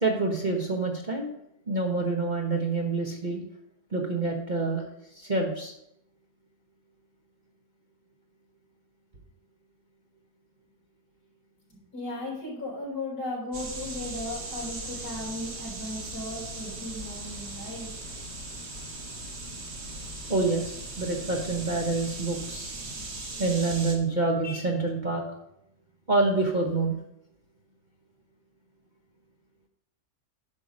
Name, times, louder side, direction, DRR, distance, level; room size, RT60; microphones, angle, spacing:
voice 1, 0.0-1.3 1.7-3.4 3.9-4.9 5.1-5.7 20.3-22.7 23.4-25.2 26.1-27.0, right 3 dB, 35° right, 1 dB, 0.9 m, -27 dB
voice 2, 11.7-17.9, left 1 dB, 35° left, -6 dB, 4.5 m, -36 dB
sound 1, 13.5-24.0, right 2 dB, 70° right, 2.2 m, -38 dB
9.9 x 5.6 x 5.3 m, 0.79 s
omnidirectional pair, 1.8 m